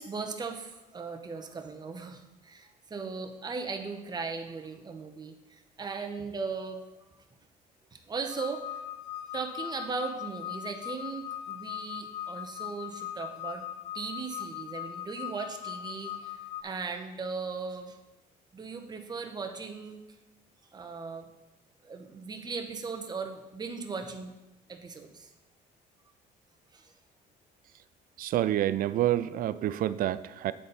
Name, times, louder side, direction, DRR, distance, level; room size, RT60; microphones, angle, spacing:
voice 1, 0.0-6.8 7.9-8.8 9.3-13.7 13.9-18.0 18.5-20.0 20.7-21.3 21.8-24.3 24.7-25.3 26.7-26.9, right 4 dB, 25° right, 4 dB, 0.9 m, -38 dB
sound 1, 8.3-16.6, left 11 dB, 85° left, 0.5 m, -39 dB
voice 2, 28.2-30.5, right 13 dB, 55° right, 15 dB, 0.4 m, -28 dB
8.5 x 4.1 x 5.6 m, 0.98 s
cardioid pair, 110°, 17 cm